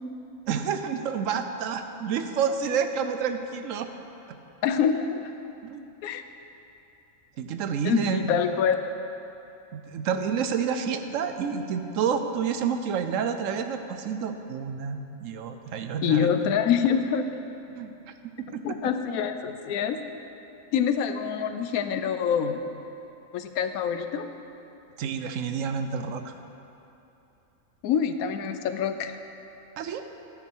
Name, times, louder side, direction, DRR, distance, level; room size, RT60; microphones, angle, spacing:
voice 1, 0.5-3.9 4.3-4.4 5.6-5.9 7.4-8.4 9.7-16.3 17.7-17.9 18.5-18.6 25.0-26.3 29.8-30.0, right 6 dB, 70° right, 8 dB, 0.9 m, -29 dB
voice 2, 4.6-5.3 6.0-6.2 7.8-8.8 16.0-17.2 18.6-20.0 20.7-22.6 23.3-24.3 27.8-29.2, left 7 dB, 90° left, 8 dB, 1.1 m, -25 dB
9.9 x 9.6 x 4.5 m, 2.9 s
omnidirectional pair, 1.5 m